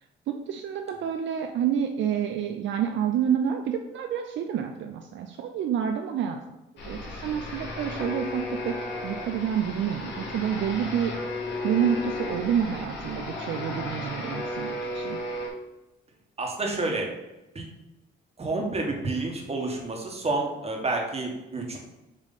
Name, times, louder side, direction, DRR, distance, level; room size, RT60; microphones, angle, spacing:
voice 1, 0.3-6.4 6.8-8.7 9.0-11.1 11.6-15.2, right 8 dB, 70° right, 5 dB, 0.5 m, -28 dB
sound 1, 6.8-15.5, left 2 dB, 65° left, 1.8 m, -34 dB
voice 2, 16.4-17.1 17.5-17.7 18.4-21.8, right 2 dB, 30° right, 1 dB, 1.5 m, -29 dB
7.5 x 3.1 x 4.1 m, 0.96 s
cardioid pair, 90°, 20 cm